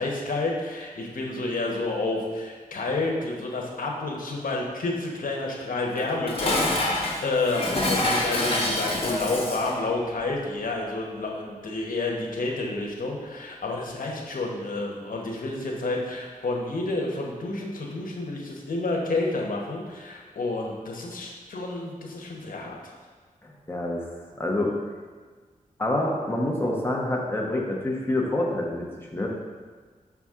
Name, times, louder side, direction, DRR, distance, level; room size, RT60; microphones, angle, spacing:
voice 1, 0.0-22.8, left 2 dB, 75° left, -1 dB, 1.1 m, -30 dB
Dishes pots and pans, 5.9-9.8, left 1 dB, 40° left, 1.2 m, -27 dB
voice 2, 23.4-24.1 24.4-24.7 25.8-29.3, left 1 dB, 15° left, -2 dB, 1.0 m, -27 dB
6.0 x 5.7 x 3.6 m, 1.5 s
wide cardioid pair, 100°, 14 cm